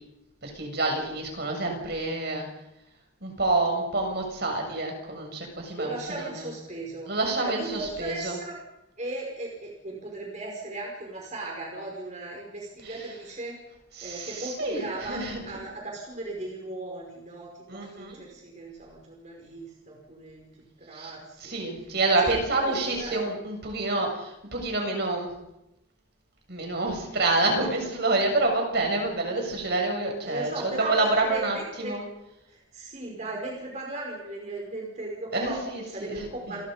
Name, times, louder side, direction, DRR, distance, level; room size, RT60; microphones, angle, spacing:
voice 1, 0.4-2.4 3.2-6.3 7.1-8.4 12.8-13.1 14.0-15.4 17.7-18.2 20.9-21.1 21.4-25.3 26.5-32.0 35.3-36.3, right 2 dB, 50° right, 2 dB, 7.0 m, -28 dB
voice 2, 5.8-7.1 7.4-8.6 9.0-13.6 14.0-20.5 20.8-21.6 22.2-23.2 30.2-31.9 32.5-35.6 35.9-36.6, right 2 dB, 35° right, -2 dB, 5.6 m, -37 dB
29.0 x 22.5 x 5.3 m, 0.89 s
head